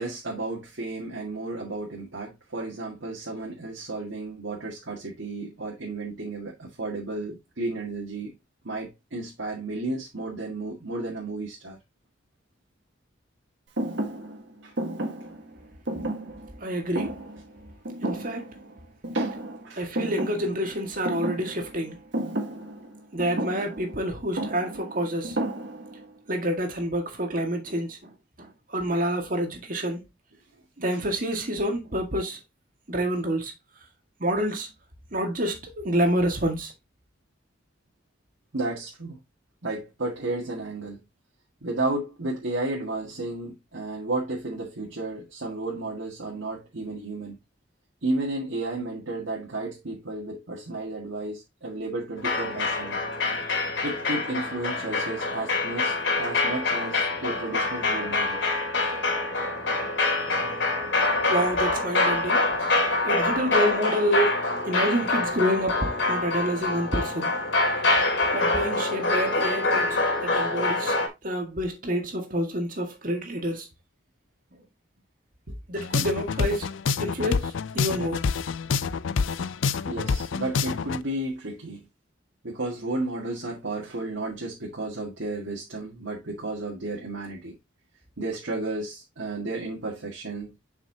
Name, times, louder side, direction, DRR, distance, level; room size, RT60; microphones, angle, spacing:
voice 1, 0.0-8.3 8.6-11.8 14.6-14.7 19.1-19.3 19.6-19.9 28.9-29.1 30.9-31.0 38.5-39.2 39.6-41.0 41.6-47.4 48.0-53.0 53.8-58.4 75.5-75.6 79.9-81.8 82.4-87.5 88.2-90.5, right 2 dB, 85° right, 1.9 m, -33 dB
Thump thud, 13.8-18.8 19.0-19.7 19.9-26.1, right 1 dB, 70° right, 1.6 m, -33 dB
voice 2, 16.6-17.2 18.0-18.6 19.7-21.9 23.1-25.4 26.3-30.1 30.8-32.4 32.9-33.5 34.2-34.7 35.1-36.7 61.3-62.5 63.1-67.3 68.3-71.0 71.2-73.7 75.7-76.7 77.0-78.2, equal, 45° right, 1.8 m, -28 dB
sound 1, 52.2-71.1, left 2 dB, 70° left, 2.6 m, -25 dB
sound 2, 75.8-81.0, left 5 dB, 90° left, 0.5 m, -27 dB
7.4 x 5.8 x 2.8 m
head